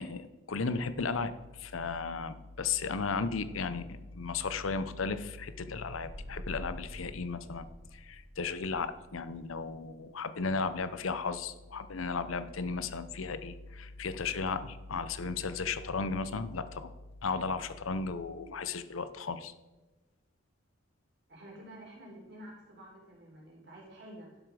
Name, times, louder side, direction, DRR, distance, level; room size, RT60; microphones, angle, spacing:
voice 1, 0.0-7.7 7.9-16.9 17.2-19.5, left 4 dB, 80° left, 12 dB, 0.7 m, -35 dB
sound 1, 6.0-17.2, equal, 55° left, 3.3 m, -52 dB
voice 2, 21.3-24.4, right 1 dB, 55° right, -2 dB, 3.9 m, -50 dB
11.5 x 7.6 x 4.8 m, 1.2 s
head